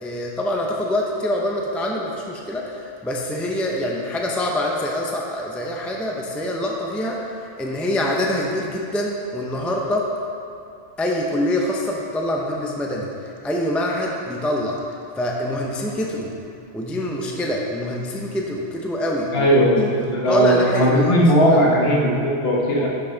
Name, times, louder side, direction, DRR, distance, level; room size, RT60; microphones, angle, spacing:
voice 1, 0.0-7.3 7.6-10.1 11.0-13.1 13.4-14.8 15.2-16.3 16.7-19.5 19.8-19.9 20.3-21.6, left 1 dB, ahead, -1 dB, 0.5 m, -25 dB
voice 2, 19.3-22.9, equal, 60° left, -3 dB, 1.4 m, -17 dB
10.5 x 5.4 x 3.9 m, 2.6 s
omnidirectional pair, 1.2 m